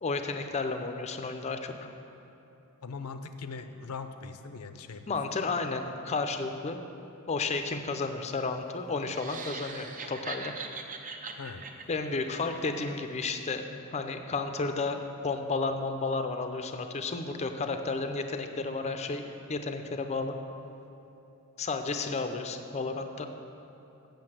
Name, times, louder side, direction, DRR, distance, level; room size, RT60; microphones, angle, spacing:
voice 1, 0.0-1.9 5.1-6.8 7.3-10.5 11.9-13.6 13.9-19.2 19.5-20.3 21.6-23.3, left 3 dB, 30° left, 6 dB, 0.5 m, -32 dB
voice 2, 2.8-5.0 11.4-11.6, left 4 dB, 80° left, 9 dB, 0.6 m, -40 dB
sound 1, 9.0-13.3, right 4 dB, 35° right, 0.6 m, -42 dB
7.8 x 6.9 x 7.5 m, 3.0 s
head